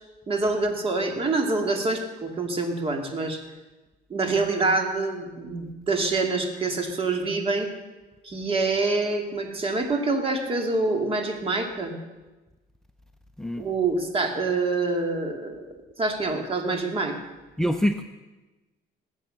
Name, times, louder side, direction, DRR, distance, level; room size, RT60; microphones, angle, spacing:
voice 1, 0.3-3.4 4.1-7.7 8.2-11.9 13.6-15.6 16.0-17.1, right 3 dB, 35° right, 4 dB, 2.5 m, -26 dB
voice 2, 17.6-18.0, equal, 5° left, 8 dB, 0.6 m, -24 dB
20.0 x 8.0 x 6.6 m, 1.1 s
cardioid pair, 110°, 17 cm